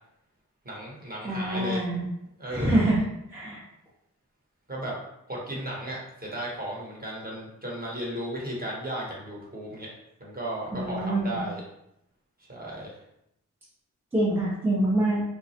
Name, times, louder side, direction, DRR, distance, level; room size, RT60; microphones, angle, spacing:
voice 1, 0.6-1.9 2.4-2.8 4.7-5.0 5.3-9.9 10.2-11.6 12.5-12.9, right 1 dB, 25° right, -4 dB, 1.0 m, -35 dB
voice 2, 1.2-2.0 2.5-3.0 3.3-3.6 10.7-11.4 14.1-15.2, right 1 dB, 5° right, -7 dB, 0.6 m, -25 dB
2.2 x 2.0 x 2.7 m, 0.79 s
cardioid pair, 45°, 35 cm